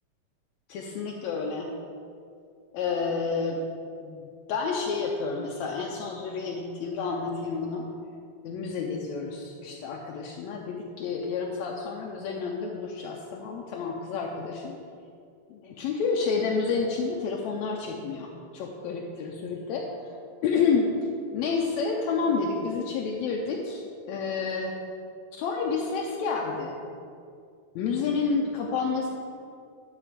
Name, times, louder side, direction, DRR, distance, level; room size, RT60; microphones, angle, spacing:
voice 1, 0.7-1.7 2.7-3.6 4.0-7.9 8.4-14.8 15.5-19.9 20.4-20.9 21.3-24.8 25.3-26.8 27.8-29.1, left 5 dB, 75° left, 0 dB, 1.9 m, -29 dB
12.0 x 4.2 x 5.0 m, 2.4 s
omnidirectional pair, 3.4 m